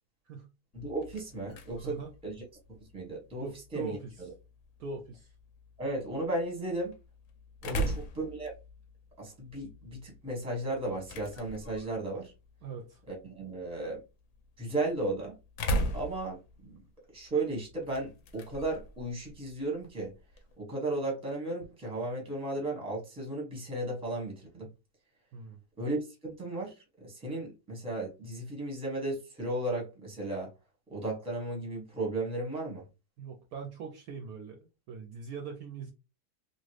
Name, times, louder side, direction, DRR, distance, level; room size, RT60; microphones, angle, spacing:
sound 1, 0.7-20.6, right 1 dB, 65° left, 0.9 m, -41 dB
voice 1, 0.7-2.4 2.7-4.3 5.8-6.9 7.6-8.5 9.2-12.3 13.1-14.0 14.6-15.4 15.9-16.8 17.1-20.1 20.6-24.7 25.8-30.5 30.9-32.8, right 2 dB, 5° right, 0.8 m, -35 dB
voice 2, 3.3-4.3 4.8-5.3 7.7-8.0 12.6-13.0 25.3-25.6 33.2-35.9, right 5 dB, 70° right, 0.9 m, -41 dB
3.0 x 2.3 x 3.1 m
omnidirectional pair, 1.9 m